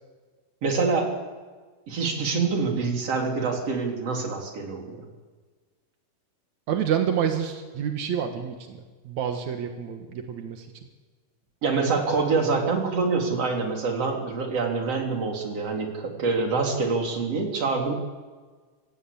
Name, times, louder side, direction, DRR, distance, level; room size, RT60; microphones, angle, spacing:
voice 1, 0.6-1.1 1.9-5.0 11.6-17.9, right 4 dB, 35° right, 2 dB, 3.5 m, -26 dB
voice 2, 6.7-10.7, right 8 dB, 70° right, 5 dB, 1.7 m, -28 dB
27.5 x 16.0 x 8.7 m, 1.4 s
omnidirectional pair, 5.7 m